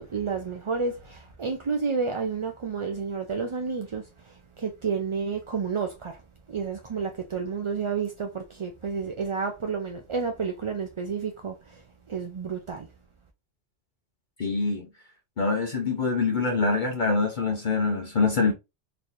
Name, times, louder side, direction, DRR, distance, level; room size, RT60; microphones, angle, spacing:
voice 1, 0.0-6.2 6.5-11.8 12.1-12.9, right 5 dB, 45° right, 0.4 m, -30 dB
voice 2, 14.4-14.9 15.4-18.5, left 4 dB, 50° left, 0.8 m, -25 dB
4.0 x 3.3 x 2.6 m
omnidirectional pair, 1.2 m